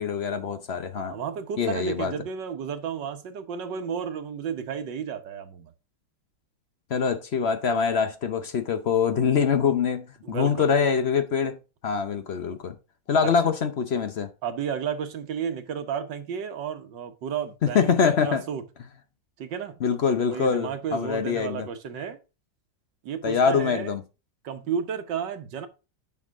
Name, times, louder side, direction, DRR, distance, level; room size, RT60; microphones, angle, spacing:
voice 1, 0.0-1.2 1.6-2.1 6.9-11.6 11.8-12.8 13.1-14.3 17.7-18.4 19.8-21.7 23.2-24.0, left 6 dB, 55° left, 0.7 m, -24 dB
voice 2, 0.9-5.7 10.2-10.7 14.4-18.6 19.4-19.8 20.3-22.2 23.0-23.9 24.4-25.7, right 7 dB, 85° right, 1.7 m, -32 dB
9.3 x 6.0 x 3.6 m
omnidirectional pair, 1.9 m